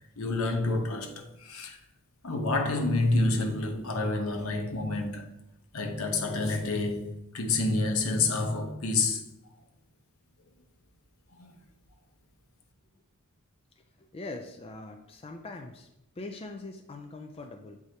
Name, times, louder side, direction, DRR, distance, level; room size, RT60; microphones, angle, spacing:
voice 1, 0.2-1.8 2.2-5.3 5.7-9.2 11.4-11.6, left 2 dB, 70° left, 0.9 m, -28 dB
voice 2, 14.0-15.9 16.2-17.8, left 2 dB, 25° left, 0.4 m, -42 dB
7.7 x 4.7 x 2.8 m
head